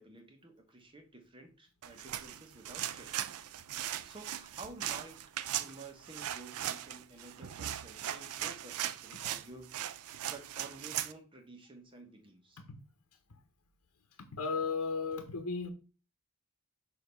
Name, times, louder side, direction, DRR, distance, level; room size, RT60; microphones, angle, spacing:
voice 1, 0.0-3.3 4.0-5.3 5.6-9.9 10.3-12.6, right 2 dB, 25° right, 1.2 m, -52 dB
sound 1, 1.8-11.1, right 11 dB, 80° right, 0.4 m, -39 dB
voice 2, 14.2-15.7, left 4 dB, 90° left, 0.9 m, -35 dB
6.5 x 2.8 x 5.3 m
head